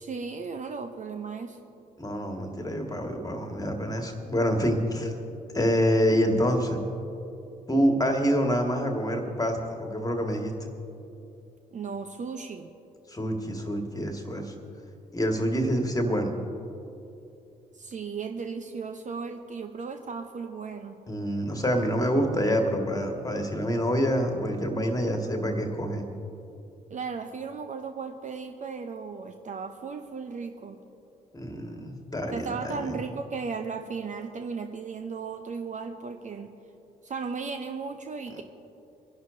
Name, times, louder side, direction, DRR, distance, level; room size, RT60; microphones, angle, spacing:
voice 1, 0.0-1.6 11.7-12.7 17.7-21.0 26.9-30.8 32.3-36.5 37.0-38.4, right 5 dB, 35° right, 6 dB, 0.8 m, -36 dB
voice 2, 2.0-5.1 5.5-6.8 7.7-10.7 13.1-14.5 15.1-16.4 21.1-26.0 31.3-33.0, equal, 15° left, 3 dB, 2.0 m, -27 dB
25.5 x 11.0 x 2.7 m, 2.8 s
figure-of-eight pair, 45°, 21 cm